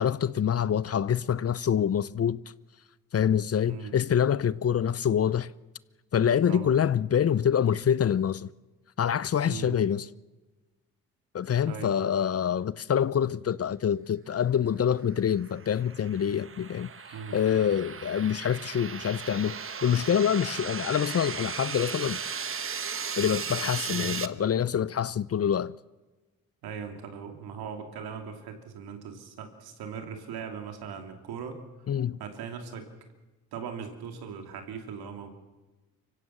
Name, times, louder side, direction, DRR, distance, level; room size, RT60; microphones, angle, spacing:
voice 1, 0.0-2.4 3.1-5.5 6.1-8.5 9.0-10.1 11.3-16.9 17.3-22.2 23.2-25.8 31.9-32.2, left 8 dB, 40° left, 0.6 m, -26 dB
voice 2, 9.5-9.8 11.7-11.9 17.1-17.4 23.9-24.1 26.6-31.6 32.2-32.9 33.5-35.3, right 6 dB, 75° right, 2.9 m, -39 dB
sound 1, 15.3-24.3, right 6 dB, 35° right, 1.1 m, -36 dB
24.5 x 16.0 x 7.2 m
supercardioid pair, 50°, 38 cm